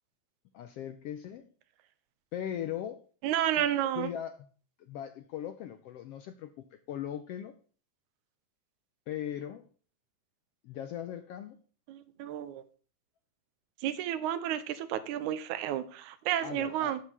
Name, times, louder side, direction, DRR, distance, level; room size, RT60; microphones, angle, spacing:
voice 1, 0.5-1.5 2.3-3.0 3.6-3.7 3.9-4.4 4.8-7.5 9.1-9.7 10.6-11.6 16.4-17.0, left 10 dB, 80° left, 8 dB, 1.4 m, -39 dB
voice 2, 3.2-4.1 11.9-12.6 13.8-17.0, right 11 dB, 85° right, 12 dB, 2.2 m, -31 dB
8.1 x 5.4 x 6.8 m, 0.41 s
omnidirectional pair, 3.4 m